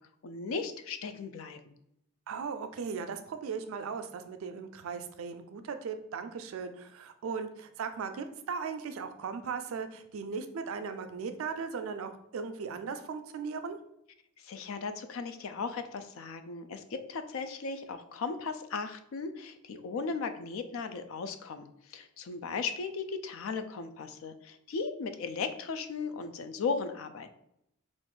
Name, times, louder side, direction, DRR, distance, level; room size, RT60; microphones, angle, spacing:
voice 1, 0.2-1.7 14.4-27.4, left 4 dB, 85° left, 9 dB, 0.3 m, -37 dB
voice 2, 2.3-13.8, right 5 dB, 90° right, 8 dB, 0.4 m, -37 dB
2.5 x 2.4 x 3.6 m, 0.77 s
head